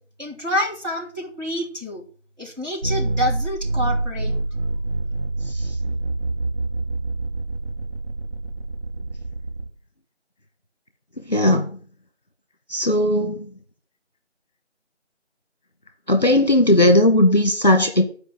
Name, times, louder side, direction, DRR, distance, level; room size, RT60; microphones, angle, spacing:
voice 1, 0.2-2.0 2.4-4.4, equal, 40° right, -5 dB, 3.4 m, -27 dB
sound 1, 2.8-9.7, right 2 dB, 55° right, 2.3 m, -26 dB
voice 2, 11.3-11.7 12.7-13.5 16.1-18.1, left 1 dB, 35° left, 5 dB, 1.6 m, -17 dB
11.5 x 5.1 x 7.7 m, 0.43 s
figure-of-eight pair, 180°, 36 cm